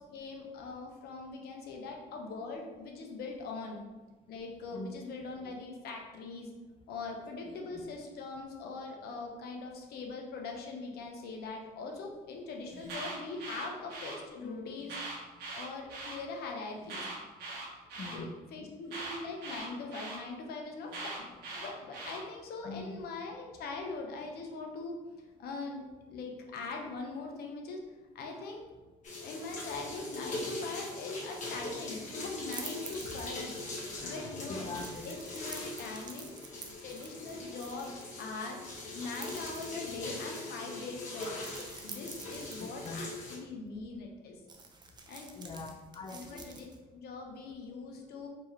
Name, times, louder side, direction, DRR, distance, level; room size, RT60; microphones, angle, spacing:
voice 1, 0.1-3.8 4.3-6.5 6.9-15.0 15.5-17.1 17.5-17.6 18.0-25.0 25.4-25.8 26.1-27.8 28.1-28.6 29.2-33.5 34.0-34.7 35.0-36.4 36.8-38.6 38.9-41.5 41.8-44.4 45.1-45.3 46.1-48.3, left 3 dB, 70° left, 1 dB, 0.8 m, -42 dB
voice 2, 7.5-7.8 18.0-18.3 22.6-22.9 34.5-35.1 42.6-43.0 45.4-46.5, left 3 dB, 30° left, 5 dB, 0.4 m, -43 dB
Alarm, 12.7-14.2 14.8-16.2 16.8-18.2 18.9-20.2 20.9-22.2, right 3 dB, 80° right, 1.2 m, -41 dB
sound 1, 29.0-43.4, left 2 dB, 45° left, 1.4 m, -41 dB
sound 2, 32.5-33.7 34.7-38.1 39.1-40.2 41.2-43.0 44.5-46.8, right 4 dB, 25° right, 0.5 m, -49 dB
4.5 x 2.7 x 3.1 m, 1.2 s
cardioid pair, 110°, 17 cm